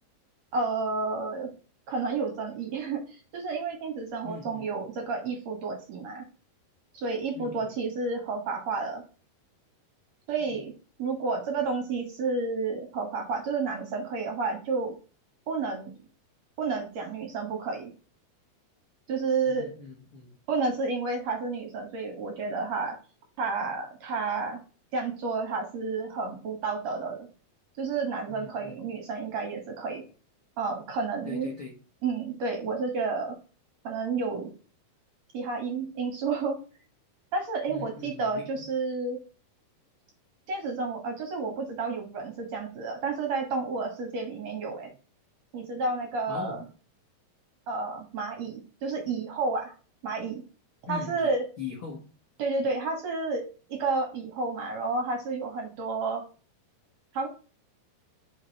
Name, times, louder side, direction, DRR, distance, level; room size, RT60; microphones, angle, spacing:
voice 1, 0.5-1.5 1.9-6.3 6.9-9.0 10.3-10.7 11.0-14.9 15.5-15.9 16.6-17.9 19.1-19.7 20.5-23.0 23.4-24.6 24.9-27.3 27.8-30.0 30.6-31.5 32.0-33.4 33.8-34.5 35.3-36.6 37.3-39.2 40.5-44.9 45.5-46.7 47.7-49.7 50.0-50.4 50.9-51.4 52.4-53.4 53.7-56.2 57.1-57.3, right 4 dB, 55° right, 2 dB, 2.2 m, -31 dB
voice 2, 4.2-4.7 7.3-7.7 10.6-10.7 19.5-20.4 28.3-28.9 31.2-31.8 37.7-38.6 46.3-46.6 50.9-51.3 51.6-52.1, left 5 dB, 55° left, -2 dB, 1.6 m, -41 dB
5.2 x 5.2 x 4.1 m, 0.36 s
omnidirectional pair, 4.2 m